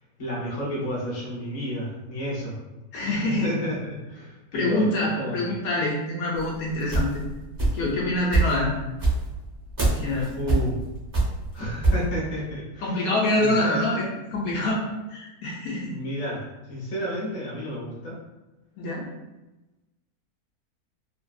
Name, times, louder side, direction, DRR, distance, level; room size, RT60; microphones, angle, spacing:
voice 1, 0.2-2.6 3.0-4.9 5.2-5.6 10.4-10.8 11.5-13.0 13.4-13.8 15.8-16.4 16.7-18.2, equal, 35° left, -6 dB, 0.7 m, -31 dB
voice 2, 2.9-3.5 4.5-7.2 7.7-8.7 9.9-10.3 12.8-14.0 14.3-14.8 15.1-15.9 18.8-19.1, left 1 dB, 70° left, -3 dB, 1.0 m, -25 dB
sound 1, 6.4-7.9 8.3-12.1, right 2 dB, 25° right, 0.5 m, -23 dB
2.7 x 2.5 x 2.2 m, 1.0 s
omnidirectional pair, 1.6 m